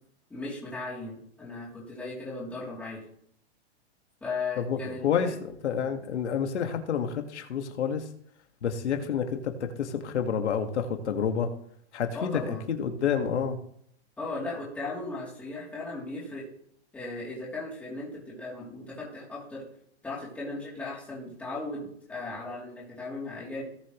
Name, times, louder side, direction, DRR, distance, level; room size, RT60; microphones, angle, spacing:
voice 1, 0.3-3.0 4.2-5.3 12.1-12.7 14.2-16.5 16.9-19.6 20.0-23.6, left 3 dB, 5° left, -7 dB, 3.1 m, -37 dB
voice 2, 4.6-8.0 8.6-11.5 11.9-13.6, left 7 dB, 85° left, 5 dB, 1.9 m, -29 dB
18.5 x 6.8 x 3.1 m, 0.67 s
hypercardioid pair, 175°, 33 cm